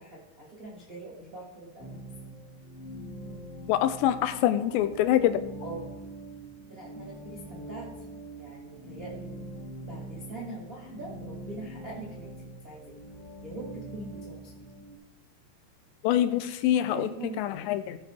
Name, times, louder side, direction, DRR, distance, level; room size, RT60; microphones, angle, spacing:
voice 1, 0.0-2.0 5.6-6.0 6.7-7.9 8.4-9.5 9.9-12.3 12.6-12.9 13.4-14.5 16.3-16.4 16.9-17.4, right 2 dB, 50° right, -4 dB, 1.0 m, -42 dB
sound 1, 1.8-14.9, right 1 dB, 30° left, 1.8 m, -43 dB
voice 2, 3.7-5.4 16.0-17.1 17.4-18.0, left 12 dB, 85° left, 11 dB, 2.7 m, -25 dB
16.0 x 5.7 x 4.6 m, 0.97 s
omnidirectional pair, 5.2 m